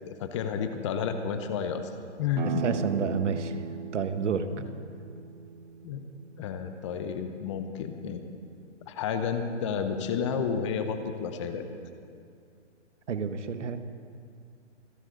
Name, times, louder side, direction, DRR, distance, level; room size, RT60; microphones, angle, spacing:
voice 1, 0.1-1.9 2.2-2.6 4.6-4.7 5.8-6.0 6.4-8.2 8.9-11.7, left 6 dB, 25° left, 8 dB, 0.8 m, -31 dB
sound 1, 2.3-7.7, right 6 dB, 45° right, 0.4 m, -39 dB
voice 2, 2.6-3.6 3.9-4.5 13.1-13.8, right 6 dB, 75° right, 9 dB, 1.3 m, -29 dB
26.5 x 11.0 x 3.9 m, 2.4 s
hypercardioid pair, 155°, 36 cm